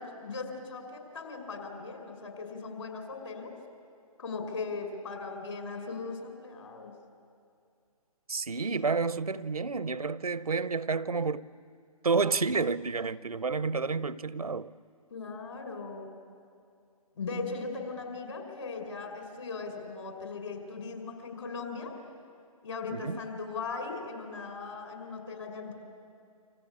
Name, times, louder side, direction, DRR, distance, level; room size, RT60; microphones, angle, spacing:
voice 1, 0.0-3.5 4.2-6.9 15.1-16.1 17.2-21.9 22.6-25.7, left 4 dB, 55° left, 5.8 m, -38 dB
voice 2, 8.3-11.4 12.0-14.7 22.9-23.2, right 4 dB, 75° right, 0.7 m, -30 dB
29.0 x 26.5 x 7.3 m
figure-of-eight pair, 135°, 19 cm